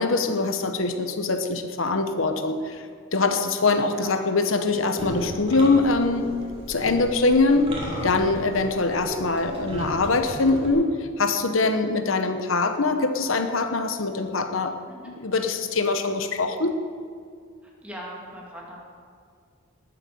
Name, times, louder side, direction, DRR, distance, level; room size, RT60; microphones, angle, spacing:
voice 1, 0.0-2.9 3.1-6.3 6.7-7.7 8.0-14.7 15.0-16.8, left 3 dB, 75° left, 7 dB, 1.0 m, -23 dB
sound 1, 5.0-10.7, equal, 25° right, 3.5 m, -35 dB
voice 2, 17.6-18.8, equal, 5° right, -3 dB, 2.8 m, -40 dB
19.0 x 8.2 x 7.0 m, 2.2 s
head